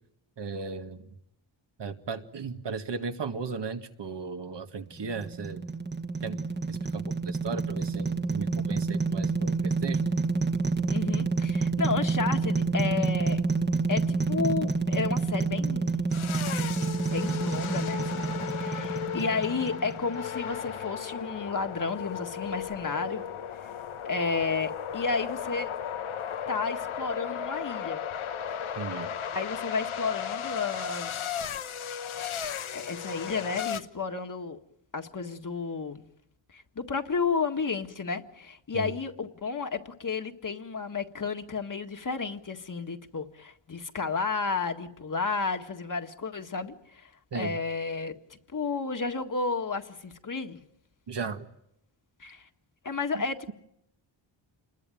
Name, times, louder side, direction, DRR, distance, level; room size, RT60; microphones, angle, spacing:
voice 1, 0.4-1.1 1.8-5.6 6.2-6.4 6.7-10.0 28.8-29.2 38.7-38.9 47.3-47.6 51.1-51.5 53.1-53.5, right 5 dB, 60° right, 7 dB, 2.0 m, -36 dB
sound 1, 5.0-20.2, right 4 dB, 20° right, 1.6 m, -28 dB
voice 2, 10.9-13.4 13.9-16.1 17.0-18.2 18.6-23.2 24.0-25.7 26.5-28.0 29.3-31.5 32.7-34.6 34.9-36.0 36.5-50.6 52.2-52.5 52.8-53.5, left 4 dB, 40° left, 5 dB, 1.8 m, -32 dB
sound 2, 16.1-33.8, left 8 dB, 85° left, 1.2 m, -35 dB
28.5 x 21.5 x 9.2 m, 0.79 s
wide cardioid pair, 130°, 48 cm